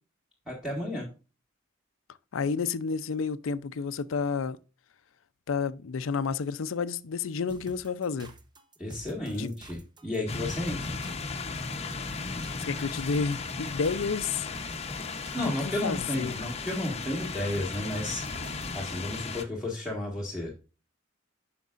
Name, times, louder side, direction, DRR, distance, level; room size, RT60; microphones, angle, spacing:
voice 1, 0.5-1.1 8.8-10.9 15.3-18.2 18.7-20.5, left 1 dB, 5° right, 1.7 m, -32 dB
voice 2, 2.3-4.6 5.5-8.3 9.4-9.5 12.6-14.5 15.8-16.4, left 5 dB, 85° left, 0.5 m, -30 dB
sound 1, 7.5-18.9, right 1 dB, 20° right, 0.8 m, -48 dB
sound 2, 10.3-19.4, left 4 dB, 30° left, 0.8 m, -36 dB
9.2 x 6.0 x 2.5 m
head